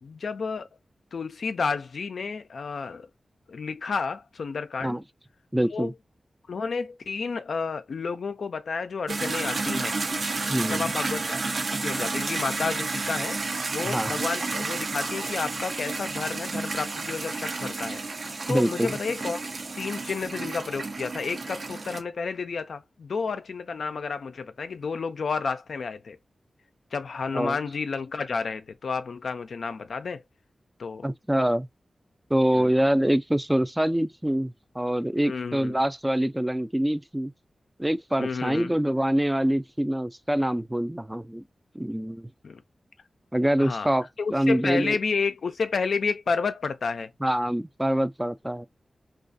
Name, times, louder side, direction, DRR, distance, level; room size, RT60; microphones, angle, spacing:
voice 1, 0.0-0.7 1.1-3.1 3.5-5.0 5.7-5.9 6.5-9.9 10.6-11.4 11.7-13.4 13.7-18.0 18.5-19.4 19.8-26.2 26.9-30.2 30.8-31.1 32.5-32.7 35.2-35.7 38.2-38.8 42.4-42.6 43.6-43.9 44.2-47.1, left 5 dB, 80° left, 0.3 m, -31 dB
voice 2, 5.5-5.9 10.5-10.8 13.8-14.1 18.5-18.9 27.3-27.6 31.0-31.7 32.3-37.3 37.8-41.4 41.7-42.3 43.3-45.0 47.2-48.6, right 1 dB, 10° right, 0.3 m, -25 dB
sound 1, 9.1-22.0, right 3 dB, 70° right, 0.5 m, -31 dB
2.4 x 2.3 x 2.5 m
cardioid pair, 40°, 0 cm